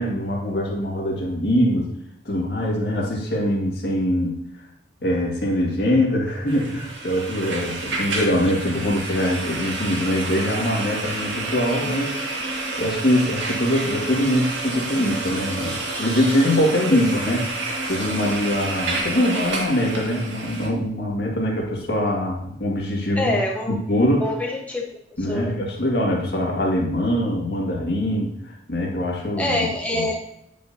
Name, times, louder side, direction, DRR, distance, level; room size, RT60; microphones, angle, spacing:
voice 1, 0.0-1.9 2.3-4.4 5.0-12.2 12.8-17.4 17.9-23.4 23.7-24.3 25.2-29.7 29.9-30.1, left 1 dB, 55° left, -2 dB, 2.0 m, -23 dB
sound 1, 6.5-20.7, right 2 dB, 75° right, 1.7 m, -29 dB
voice 2, 23.2-23.7 24.2-24.8 25.3-25.6 29.4-30.2, left 1 dB, 10° left, -2 dB, 1.1 m, -25 dB
9.9 x 5.3 x 2.7 m, 0.76 s
head